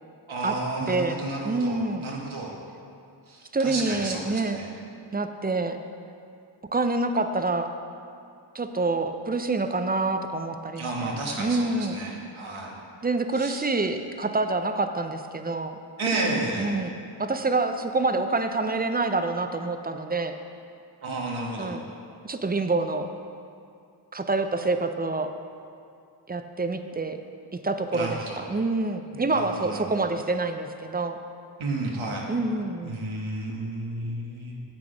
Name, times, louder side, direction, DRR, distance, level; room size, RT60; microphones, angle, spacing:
voice 1, 0.3-2.5 3.3-4.7 10.8-12.8 13.3-13.6 16.0-16.8 21.0-21.8 27.9-28.4 29.3-30.0 31.6-32.3 32.8-34.6, right 2 dB, 80° right, -2 dB, 1.4 m, -32 dB
voice 2, 0.9-1.2 1.4-2.0 3.5-4.6 5.1-5.8 6.7-7.7 8.5-12.0 13.0-15.8 16.6-16.9 17.2-20.3 21.6-21.8 22.2-23.1 24.1-25.3 26.3-27.2 27.6-31.2 32.3-33.0, right 3 dB, 20° right, 7 dB, 0.5 m, -27 dB
7.7 x 6.0 x 5.0 m, 2.4 s
cardioid pair, 50°, 47 cm